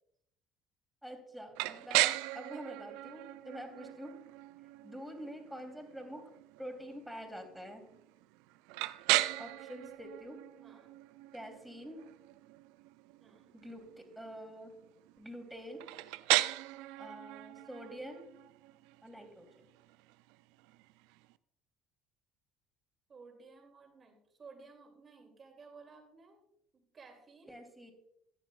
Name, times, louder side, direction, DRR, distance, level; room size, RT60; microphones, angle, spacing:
voice 1, 1.0-4.1 4.8-6.2 6.6-7.8 9.4-10.4 11.3-12.0 13.5-14.7 15.2-15.8 17.0-18.2 19.0-19.6 27.5-27.9, equal, ahead, 3 dB, 3.0 m, -46 dB
sound 1, 1.5-21.3, right 19 dB, 75° right, 0.3 m, -37 dB
voice 2, 10.6-10.9 13.2-13.6 23.1-26.4 26.7-27.6, right 4 dB, 40° right, 3 dB, 2.6 m, -56 dB
14.5 x 10.0 x 2.4 m, 0.72 s
hypercardioid pair, 65°, 0 cm